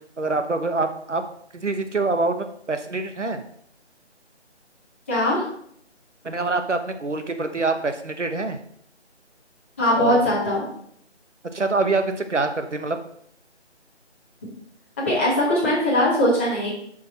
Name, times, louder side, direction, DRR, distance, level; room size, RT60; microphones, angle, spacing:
voice 1, 0.2-1.2 1.5-3.4 6.2-8.6 9.9-10.2 11.5-13.0, right 3 dB, 80° right, 7 dB, 1.1 m, -25 dB
voice 2, 5.1-5.4 9.8-10.6 15.0-16.7, left 1 dB, 10° left, -6 dB, 1.2 m, -20 dB
7.2 x 5.3 x 4.2 m, 0.68 s
figure-of-eight pair, 160°, 35 cm